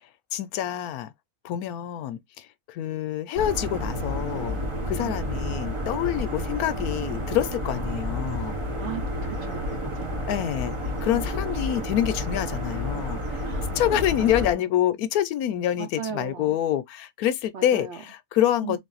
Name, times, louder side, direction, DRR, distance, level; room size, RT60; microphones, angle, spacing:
voice 1, 0.3-1.1 1.4-8.6 10.3-13.4 13.7-18.8, left 11 dB, 75° left, 1.0 m, -27 dB
sound 1, 3.4-14.5, equal, 35° right, 0.5 m, -30 dB
voice 2, 9.4-10.3 13.4-14.6 15.8-16.6 17.5-18.0 18.6-18.8, right 7 dB, 55° right, 0.9 m, -37 dB
3.6 x 2.6 x 3.8 m
omnidirectional pair, 1.6 m